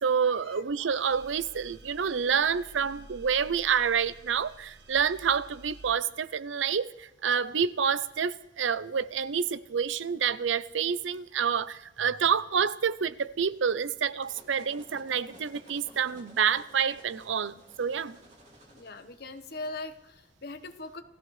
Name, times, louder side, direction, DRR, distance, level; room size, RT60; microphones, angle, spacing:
voice 1, 0.0-18.2, right 7 dB, 85° right, 0.6 m, -28 dB
sound 1, 0.9-6.0, right 1 dB, 65° right, 1.5 m, -51 dB
sound 2, 13.9-19.7, right 1 dB, 40° right, 3.1 m, -54 dB
voice 2, 18.7-21.0, left 2 dB, 55° left, 1.2 m, -40 dB
29.0 x 15.0 x 3.3 m
head